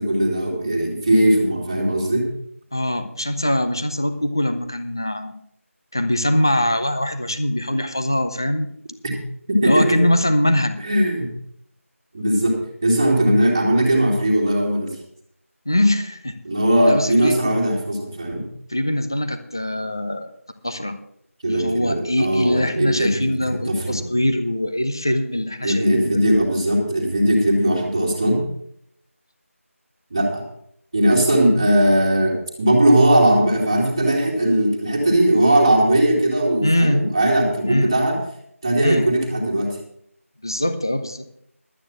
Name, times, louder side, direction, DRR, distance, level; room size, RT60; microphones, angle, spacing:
voice 1, 0.0-2.3 9.0-9.1 9.5-10.0 10.8-11.3 12.1-15.0 16.4-18.4 21.4-24.0 25.6-28.4 30.1-30.4 30.9-38.2 38.6-39.8, right 1 dB, 15° right, -2 dB, 2.2 m, -19 dB
voice 2, 2.7-5.3 5.9-8.7 9.6-10.8 15.7-16.3 16.9-17.3 18.7-20.3 20.6-21.0 21.5-26.2 36.6-37.0 37.7-37.9 38.8-39.1 40.4-41.2, left 1 dB, 15° left, 9 dB, 0.6 m, -22 dB
12.0 x 9.0 x 5.9 m, 0.69 s
figure-of-eight pair, 175°, 8 cm